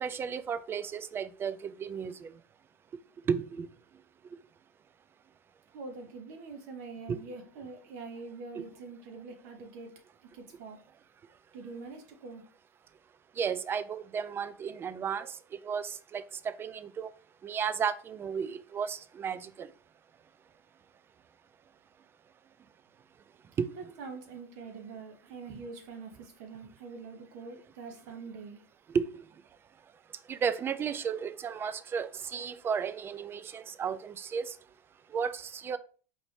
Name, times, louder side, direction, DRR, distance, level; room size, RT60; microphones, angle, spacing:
voice 1, 0.0-2.3 3.3-3.7 7.1-7.2 8.6-8.7 13.4-17.1 17.4-19.7 23.6-23.7 28.9-29.0 30.3-34.6 35.1-35.8, right 6 dB, 25° right, 0.3 m, -33 dB
voice 2, 5.7-9.9 10.2-10.8 11.5-12.4 23.7-28.6, right 4 dB, 65° right, 1.0 m, -44 dB
4.6 x 2.5 x 3.3 m
hypercardioid pair, 105°, 10 cm